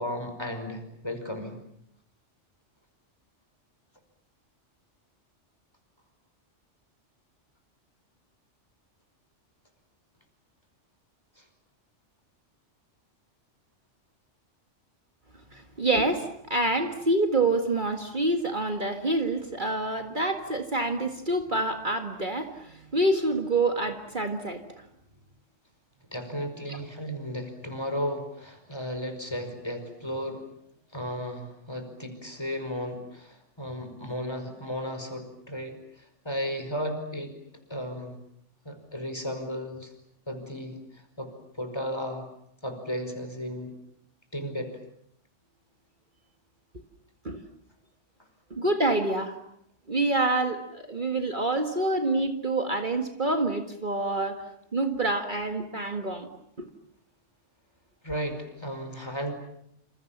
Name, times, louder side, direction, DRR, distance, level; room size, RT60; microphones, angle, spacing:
voice 1, 0.0-1.6 11.4-11.5 26.1-30.4 30.9-37.3 37.7-38.1 38.6-39.9 40.3-41.3 41.6-42.3 42.6-43.7 44.3-44.8 58.0-59.3, equal, 20° left, 7 dB, 5.1 m, -34 dB
voice 2, 15.5-24.8 26.7-26.8 47.2-47.4 48.5-49.4 49.9-54.4 54.7-56.3 56.6-56.7, right 2 dB, 40° right, 5 dB, 2.0 m, -27 dB
28.5 x 28.0 x 7.4 m, 0.72 s
omnidirectional pair, 1.2 m